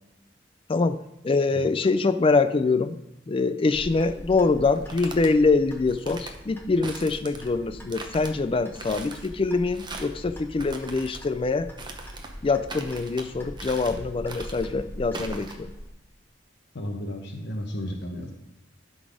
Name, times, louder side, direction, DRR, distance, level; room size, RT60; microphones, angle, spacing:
voice 1, 1.2-3.0 3.3-11.7 12.4-15.7, left 3 dB, 30° left, 12 dB, 0.4 m, -24 dB
Clock, 3.7-15.9, equal, 10° left, 1.1 m, -42 dB
sound 1, 4.6-5.3 5.9-6.4 6.8-7.5 7.9-8.3 8.7-9.3 9.7-10.2 10.6-11.2 11.8-12.3 12.7-13.3 13.6-14.0 14.3-14.7 15.1-15.5, right 3 dB, 25° right, 0.8 m, -40 dB
voice 2, 16.7-18.3, equal, 60° left, 2 dB, 0.9 m, -33 dB
12.0 x 4.1 x 5.0 m, 0.93 s
head